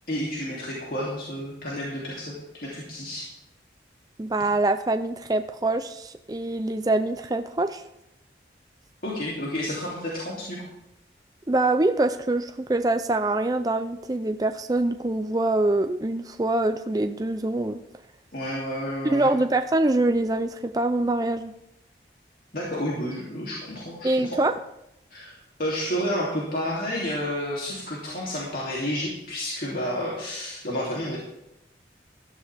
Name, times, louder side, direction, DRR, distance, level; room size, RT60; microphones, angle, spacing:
voice 1, 0.1-2.3 2.6-3.2 9.0-10.6 18.3-19.3 22.5-24.4 25.1-31.2, equal, 50° left, -6 dB, 2.9 m, -30 dB
voice 2, 4.2-7.8 11.5-17.8 19.1-21.5 24.0-24.5, right 2 dB, 20° right, 8 dB, 0.4 m, -24 dB
16.0 x 12.5 x 3.5 m, 0.83 s
head